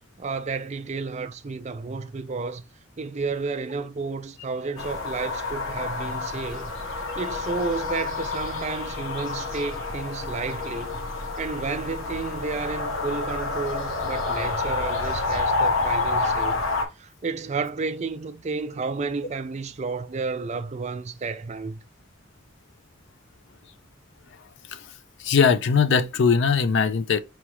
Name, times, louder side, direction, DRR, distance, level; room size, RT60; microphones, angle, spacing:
voice 1, 0.2-2.6 3.0-11.0 11.4-16.6 17.0-21.8, right 4 dB, 35° right, 0.4 m, -31 dB
sound 1, 4.8-16.8, left 3 dB, 80° left, 1.1 m, -28 dB
voice 2, 25.2-27.2, left 6 dB, 60° left, 0.5 m, -20 dB
4.6 x 3.1 x 3.1 m
head